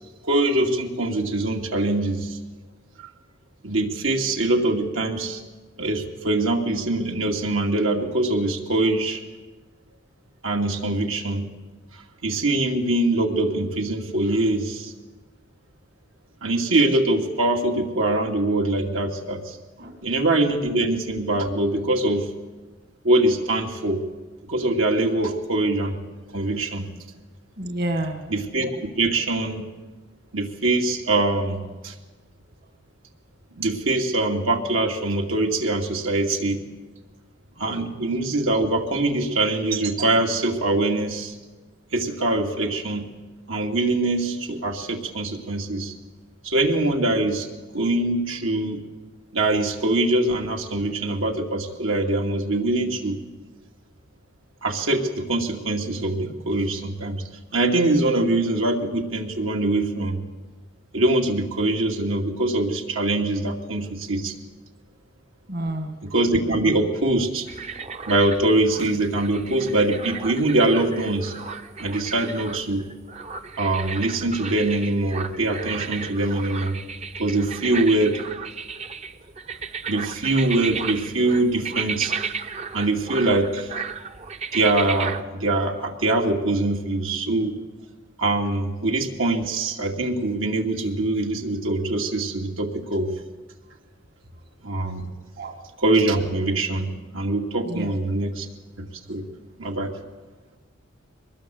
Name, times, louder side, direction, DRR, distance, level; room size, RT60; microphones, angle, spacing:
voice 1, 0.2-2.4 3.6-5.4 5.8-9.2 10.4-11.5 12.2-14.9 16.4-19.6 20.0-22.3 23.0-24.0 24.5-26.0 26.3-26.9 28.3-28.7 29.0-29.7 30.3-31.9 33.6-36.6 37.6-41.3 41.9-43.1 43.5-45.9 46.4-47.5 47.7-48.8 49.3-53.2 54.6-57.2 57.5-60.2 60.9-64.3 66.0-67.5 68.1-71.4 71.8-72.8 73.6-76.8 77.2-78.2 79.9-82.1 82.7-83.7 84.5-87.6 88.2-93.1 94.6-95.1 95.8-98.5 98.8-99.2 99.6-99.9, right 2 dB, 80° right, 1 dB, 2.6 m, -23 dB
voice 2, 27.6-28.3 65.5-66.0 95.4-95.5 97.7-97.9, right 1 dB, 50° right, 4 dB, 2.0 m, -28 dB
sound 1, 67.5-85.2, right 5 dB, 35° right, 0.8 m, -34 dB
23.5 x 20.5 x 7.9 m, 1.3 s
head